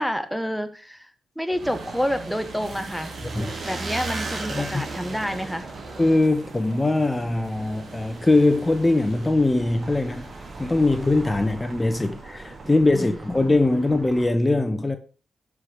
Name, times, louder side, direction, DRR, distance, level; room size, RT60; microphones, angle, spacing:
voice 1, 0.0-3.2 3.6-5.7 12.9-13.2, equal, ahead, 1.3 m, -28 dB
sound 1, 1.5-14.3, right 3 dB, 55° right, 2.2 m, -38 dB
sound 2, 1.6-9.3, right 4 dB, 75° right, 2.0 m, -42 dB
voice 2, 6.0-10.3 10.6-15.0, left 2 dB, 20° left, 1.2 m, -21 dB
12.5 x 5.0 x 5.1 m
supercardioid pair, 45°, 0 cm